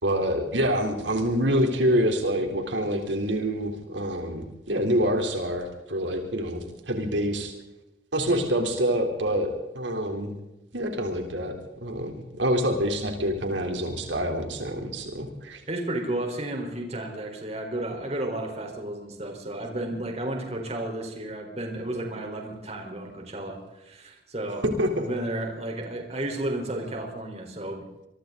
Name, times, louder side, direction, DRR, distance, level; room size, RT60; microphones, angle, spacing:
voice 1, 0.0-7.5 8.1-9.5 9.7-10.3 10.7-11.5 11.8-15.6 24.6-25.1, equal, 85° right, 4 dB, 3.8 m, -26 dB
voice 2, 15.7-24.6 24.9-27.9, right 1 dB, 35° right, 3 dB, 4.5 m, -32 dB
27.0 x 23.5 x 4.1 m, 0.98 s
head